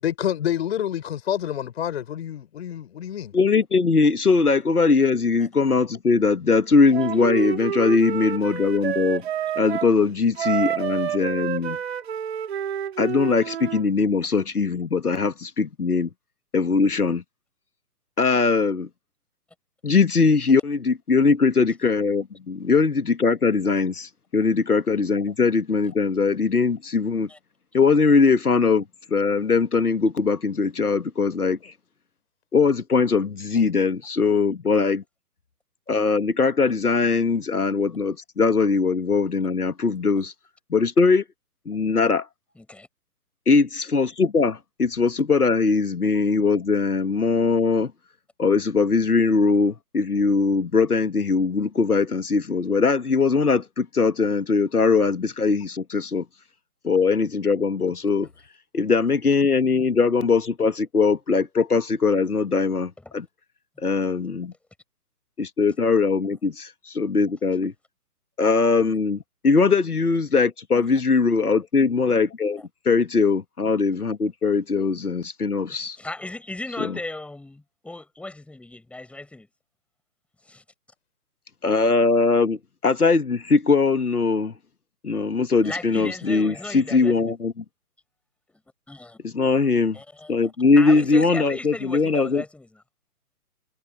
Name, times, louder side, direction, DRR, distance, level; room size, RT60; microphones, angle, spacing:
voice 1, 0.0-3.3, left 10 dB, 40° left, 6.0 m, -28 dB
voice 2, 3.3-9.2 9.6-11.8 13.0-16.1 16.5-17.2 18.2-18.9 19.8-27.3 27.7-28.8 29.1-31.6 32.5-35.0 35.9-40.3 40.7-41.2 41.7-42.3 43.5-47.9 48.4-56.2 56.8-58.3 58.7-63.3 63.8-64.5 65.4-67.7 68.4-76.0 76.8-77.0 81.6-84.5 85.0-87.6 89.2-90.0 90.3-92.4, left 4 dB, 70° left, 1.9 m, -21 dB
Wind instrument woodwind instrument, 6.9-9.9 10.4-13.8, right 9 dB, 40° right, 3.6 m, -28 dB
voice 3, 42.6-42.9 70.7-71.0 75.8-79.5 80.5-80.6 85.6-87.3 88.9-89.2 89.9-90.3 90.8-92.7, left 2 dB, 5° left, 5.8 m, -36 dB
figure-of-eight pair, 135°, 46 cm